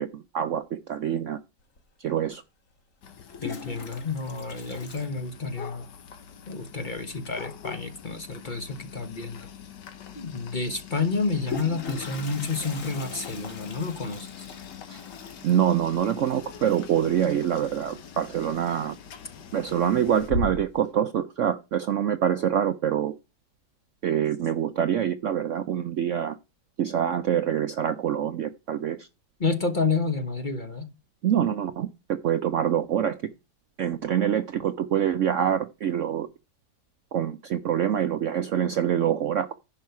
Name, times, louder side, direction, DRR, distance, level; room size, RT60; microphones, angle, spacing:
voice 1, 0.0-1.4 2.0-2.4 14.9-15.0 15.4-19.0 19.5-23.1 24.0-26.4 26.8-29.1 31.2-33.1 33.8-36.3 37.1-39.5, right 9 dB, 65° right, 0.8 m, -25 dB
Toilet flush, 1.8-1.9 3.1-5.9 6.1-6.2 6.5-6.6 6.9-7.3 9.0-9.1 9.5-9.6 11.1-17.8 18.1-18.5 19.0-19.5 19.9-20.9, left 3 dB, 50° left, 1.9 m, -38 dB
sound 1, 3.0-20.3, left 8 dB, 85° left, 1.8 m, -45 dB
voice 2, 3.4-5.9 6.5-9.5 10.1-14.3 29.4-30.9, left 4 dB, 30° left, 1.2 m, -30 dB
10.5 x 5.5 x 5.7 m
omnidirectional pair, 1.8 m